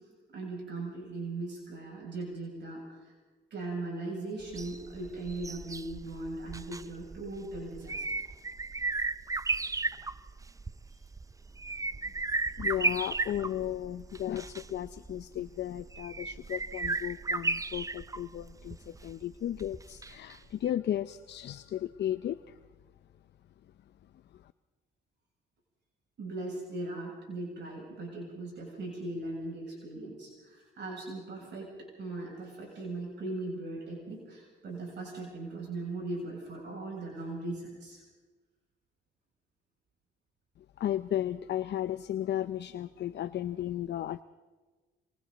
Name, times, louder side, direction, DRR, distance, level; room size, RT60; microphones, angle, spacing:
voice 1, 0.3-3.1 3.5-8.0 26.2-38.0, right 2 dB, 60° right, -2 dB, 7.6 m, -39 dB
sound 1, 4.4-20.4 20.7-20.8, right 3 dB, 15° right, 0.5 m, -35 dB
voice 2, 12.6-22.6 24.3-24.5 40.6-44.2, left 11 dB, 60° left, 12 dB, 0.6 m, -35 dB
27.5 x 24.0 x 4.1 m, 1.3 s
cardioid pair, 90°, 20 cm